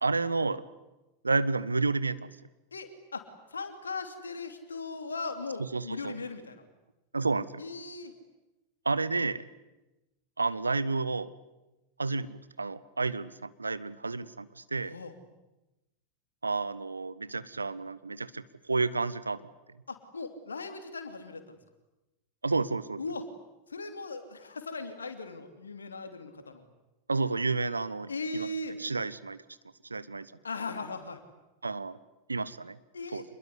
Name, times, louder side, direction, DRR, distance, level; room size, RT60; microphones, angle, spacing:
voice 1, 0.0-0.6 1.2-2.3 5.6-6.1 7.1-7.6 8.8-9.5 10.4-11.3 12.0-15.0 16.4-19.4 22.4-23.0 27.1-28.5 28.8-29.4 29.9-30.3 31.6-32.0 32.3-32.8 33.1-33.2, right 3 dB, 80° right, 16 dB, 1.0 m, -30 dB
voice 2, 2.7-3.2 3.5-6.6 7.6-8.1 14.9-15.1 19.9-21.5 23.0-23.2 23.7-26.6 28.1-28.8 30.4-31.2 32.9-33.2, left 3 dB, 75° left, 8 dB, 3.0 m, -38 dB
26.5 x 21.5 x 9.7 m, 1.0 s
figure-of-eight pair, 90°, 0 cm